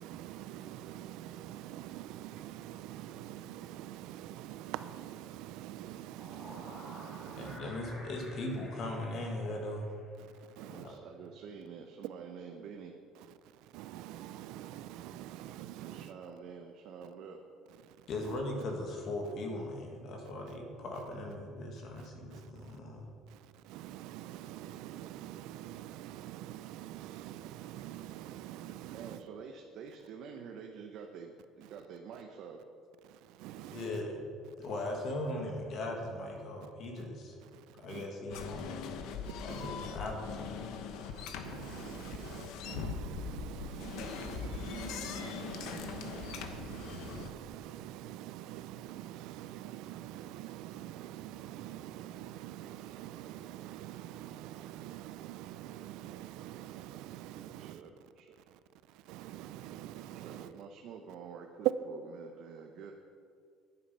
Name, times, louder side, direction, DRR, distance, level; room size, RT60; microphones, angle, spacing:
voice 1, 0.0-7.6 10.6-10.9 13.7-16.1 22.0-22.5 23.3-23.4 23.6-29.2 33.1-33.9 37.4-37.6 37.9-38.1 39.5-39.7 41.1-57.8 59.1-60.5, right 12 dB, 75° right, 0.5 m, -45 dB
sound 1, 5.9-10.3, left 1 dB, 30° left, 3.5 m, -52 dB
voice 2, 7.4-9.9 10.7-11.0 18.1-23.1 33.7-34.2 34.6-37.3 37.8-39.0 39.4-40.7, left 1 dB, 45° left, 2.1 m, -39 dB
voice 3, 10.6-12.9 15.8-17.4 28.9-32.6 57.4-58.5 60.1-62.9, right 6 dB, 60° right, 0.9 m, -48 dB
sound 2, 38.3-47.3, left 6 dB, 75° left, 1.0 m, -41 dB
11.5 x 9.7 x 5.6 m
cardioid pair, 155°, 0 cm